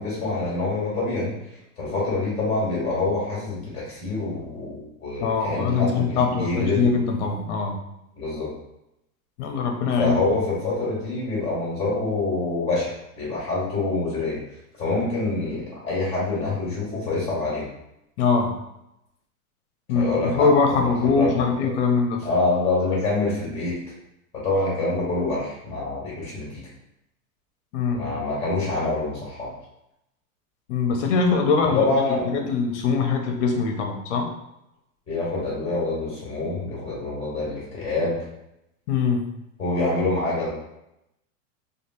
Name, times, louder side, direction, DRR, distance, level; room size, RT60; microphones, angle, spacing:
voice 1, 0.0-1.3 1.8-6.9 8.2-8.5 10.0-14.4 14.8-17.6 19.9-20.5 20.8-21.3 22.2-23.8 24.3-26.5 27.9-29.5 31.7-32.3 35.1-38.2 39.6-40.5, left 3 dB, 15° left, -6 dB, 1.4 m, -26 dB
voice 2, 5.2-7.8 9.4-10.4 18.2-18.5 19.9-22.2 27.7-28.0 30.7-31.9 32.3-34.3 38.9-39.2, left 5 dB, 55° left, 3 dB, 0.7 m, -22 dB
3.2 x 2.4 x 2.7 m, 0.85 s
supercardioid pair, 155°, 44 cm